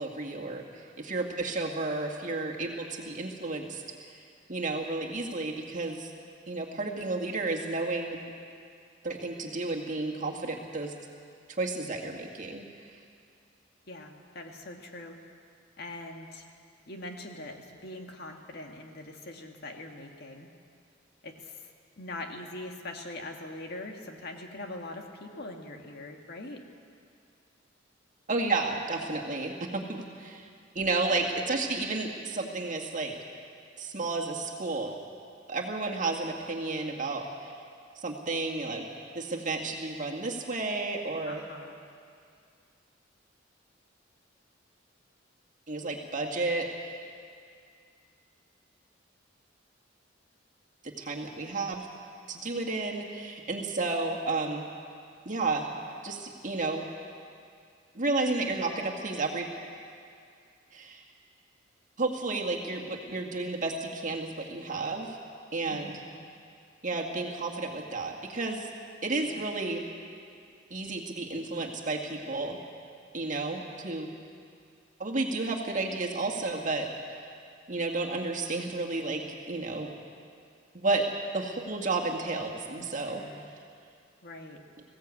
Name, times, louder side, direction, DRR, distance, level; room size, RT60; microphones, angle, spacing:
voice 1, 0.0-3.8 4.1-4.2 4.5-6.1 6.5-8.2 9.0-10.9 11.5-12.6 28.3-30.5 30.8-33.1 33.8-35.0 35.5-37.5 38.0-38.9 39.2-41.4 45.7-47.0 50.8-51.9 52.3-54.7 55.3-55.7 56.0-56.9 57.9-59.5 60.7-61.0 62.0-65.2 65.5-65.9 66.8-68.7 69.0-69.8 70.7-72.6 73.1-74.1 75.0-77.2 77.7-79.9 80.7-81.1 81.3-83.2, right 3 dB, 40° right, 0 dB, 2.1 m, -32 dB
voice 2, 13.9-15.2 15.8-16.4 16.9-20.5 21.2-21.7 22.0-26.6 41.2-41.8 65.7-66.2 69.2-69.4 82.8-83.4 84.2-84.6, left 2 dB, 55° left, 2 dB, 1.9 m, -42 dB
20.5 x 16.5 x 8.5 m, 2.3 s
head